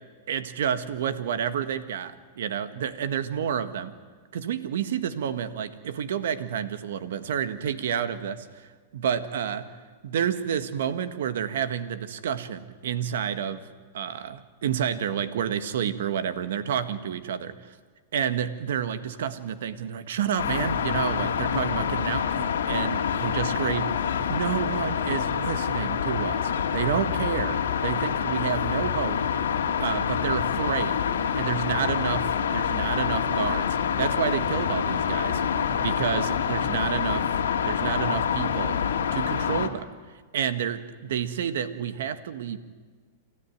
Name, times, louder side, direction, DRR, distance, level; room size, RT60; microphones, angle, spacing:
voice 1, 0.3-3.9 4.3-8.5 8.9-9.7 10.0-13.6 13.9-17.5 18.1-24.0 24.3-29.2 29.8-31.0 31.3-35.4 35.8-37.3 37.6-38.8 39.1-39.9 40.3-42.6, right 8 dB, 75° right, 10 dB, 1.7 m, -29 dB
sound 1, 20.4-39.7, left 7 dB, 85° left, 2.0 m, -26 dB
28.0 x 14.0 x 9.3 m, 1.5 s
hypercardioid pair, 120°, 0 cm